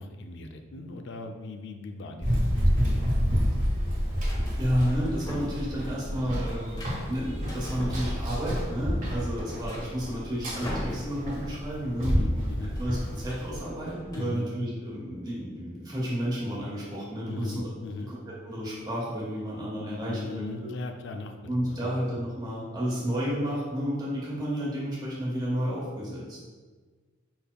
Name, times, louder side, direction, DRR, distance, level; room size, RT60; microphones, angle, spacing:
voice 1, 0.0-3.3 9.0-9.3 12.0-12.7 14.1-14.5 17.3-18.1 20.1-22.0, left 2 dB, 60° left, 5 dB, 0.4 m, -39 dB
Run, 2.2-13.6, equal, 40° right, 1.3 m, -29 dB
sound 1, 2.3-3.1 4.3-5.7 6.0-8.5 8.9-9.0 9.2-11.5 11.7-11.9 12.2-14.2, equal, 20° left, 0.8 m, -40 dB
voice 2, 4.6-6.8 7.1-12.3 12.8-17.7 18.1-18.2 18.4-20.4 21.5-26.4, equal, 20° right, -6 dB, 1.2 m, -31 dB
5.2 x 4.4 x 2.3 m, 1.4 s
head